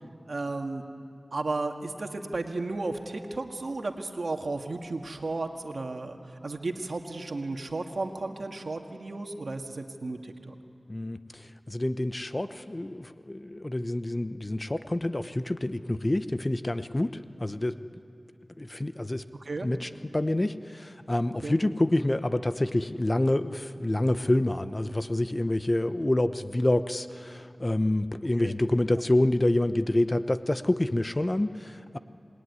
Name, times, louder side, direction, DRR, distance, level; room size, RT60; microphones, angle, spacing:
voice 1, 0.3-0.8 1.3-10.5 19.4-19.7 21.4-21.6 28.4-28.5 28.9-29.0, right 3 dB, 70° right, 4 dB, 1.8 m, -34 dB
voice 2, 10.9-17.8 18.6-19.2 19.6-32.0, left 1 dB, 30° left, 11 dB, 0.9 m, -27 dB
27.0 x 20.5 x 9.7 m, 2.6 s
wide cardioid pair, 50°, 0 cm